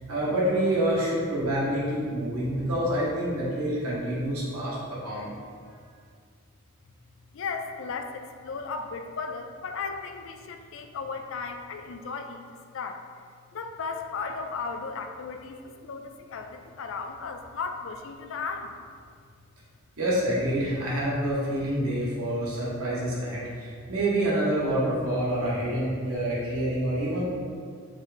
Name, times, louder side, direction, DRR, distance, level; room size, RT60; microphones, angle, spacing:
voice 1, 0.1-4.8 5.0-5.4 20.0-27.2, right 1 dB, 85° right, -7 dB, 1.4 m, -27 dB
voice 2, 7.3-12.4 12.7-13.0 13.5-18.7, left 4 dB, 60° left, 6 dB, 0.4 m, -35 dB
5.3 x 2.5 x 3.8 m, 2.1 s
head